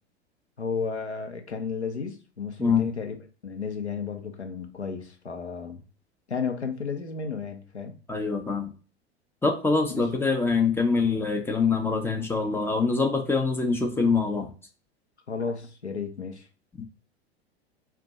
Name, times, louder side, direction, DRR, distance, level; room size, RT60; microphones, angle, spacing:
voice 1, 0.6-3.2 3.4-5.8 6.3-8.0 9.9-10.1 15.3-16.5, left 5 dB, 85° left, 0.8 m, -33 dB
voice 2, 8.1-8.7 9.4-14.5 16.8-16.9, left 4 dB, 5° left, 0.5 m, -24 dB
2.6 x 2.3 x 3.9 m
figure-of-eight pair, 90°, 33 cm